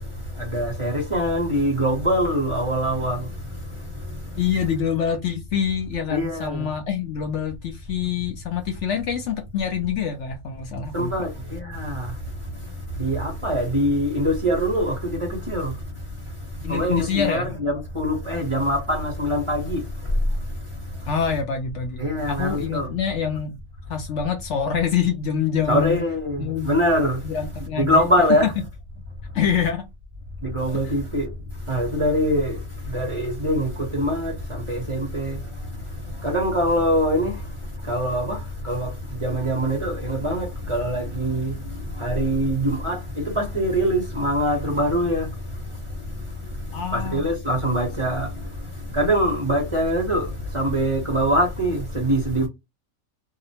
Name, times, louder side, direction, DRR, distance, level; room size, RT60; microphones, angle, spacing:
voice 1, 0.3-3.3 4.1-4.2 6.1-6.7 10.9-12.2 12.9-15.8 16.7-20.1 22.0-22.9 25.7-27.2 27.8-28.5 30.4-31.3 31.7-35.4 36.1-37.5 37.8-45.3 46.5-46.6 46.9-52.5, equal, 25° right, 0.8 m, -23 dB
voice 2, 4.4-11.1 16.6-17.5 21.1-23.6 23.9-26.0 26.4-26.7 27.2-28.4 29.3-29.9 30.7-30.8 46.7-47.3, left 7 dB, 65° left, 0.8 m, -26 dB
2.7 x 2.1 x 2.7 m
omnidirectional pair, 1.5 m